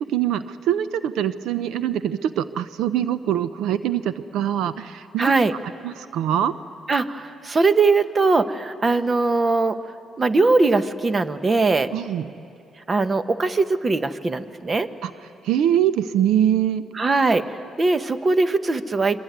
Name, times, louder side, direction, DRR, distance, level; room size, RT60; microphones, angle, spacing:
voice 1, 0.1-5.3 5.8-6.5 11.9-12.2 15.0-15.1 15.4-16.8, right 10 dB, 85° right, 13 dB, 0.6 m, -23 dB
voice 2, 5.2-5.5 6.9-9.8 10.2-11.9 12.9-14.9 16.9-17.5 17.8-19.2, right 3 dB, 30° right, 11 dB, 1.2 m, -20 dB
25.5 x 23.5 x 9.4 m, 2.5 s
cardioid pair, 90°, 0 cm